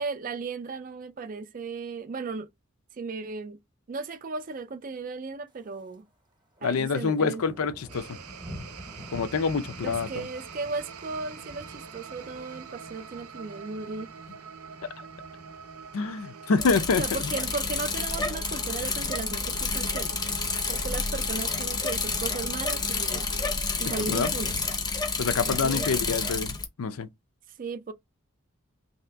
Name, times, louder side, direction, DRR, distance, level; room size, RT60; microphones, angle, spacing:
voice 1, 0.0-2.5 3.0-3.6 3.9-6.1 6.6-7.4 9.8-14.1 17.0-20.2 20.7-23.3 23.8-24.6 25.4-25.9 27.6-27.9, right 4 dB, 40° right, 0.3 m, -36 dB
Thunder, 5.5-6.0 6.3-16.7 17.0-17.4 17.8-18.3 18.5-18.6 18.8-18.9 19.3-19.9 20.6-21.6, equal, 20° right, 0.8 m, -48 dB
voice 2, 6.6-8.1 9.1-10.2 15.0-15.1 15.9-17.3 24.1-24.3 25.2-27.1, left 4 dB, 80° left, 0.5 m, -27 dB
sound 1, 7.9-23.6, right 5 dB, 90° right, 0.6 m, -45 dB
Bicycle, 16.6-26.6, left 4 dB, 20° left, 0.6 m, -29 dB
3.3 x 2.7 x 3.4 m
head